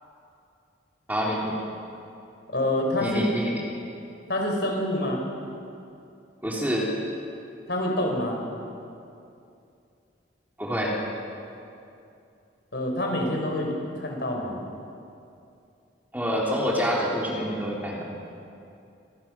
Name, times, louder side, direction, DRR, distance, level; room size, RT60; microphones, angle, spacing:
voice 1, 1.1-1.6 3.0-3.6 6.4-6.9 10.6-10.9 16.1-18.0, equal, 10° right, -4 dB, 3.4 m, -27 dB
voice 2, 2.5-3.3 4.3-5.2 7.7-8.4 12.7-14.6, left 1 dB, 60° left, 1 dB, 4.6 m, -27 dB
26.5 x 19.5 x 6.1 m, 2.6 s
head